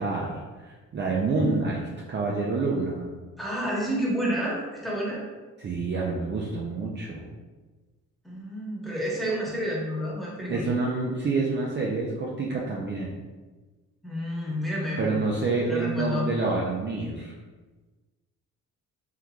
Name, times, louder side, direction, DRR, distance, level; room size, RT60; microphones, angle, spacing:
voice 1, 0.0-3.1 5.6-7.3 10.5-13.1 15.0-17.3, right 3 dB, 35° right, -3 dB, 0.5 m, -28 dB
voice 2, 3.4-5.2 8.2-10.7 14.0-15.1 15.6-16.2, equal, ahead, -6 dB, 1.1 m, -30 dB
3.7 x 2.9 x 2.3 m, 1.3 s
cardioid pair, 90°, 30 cm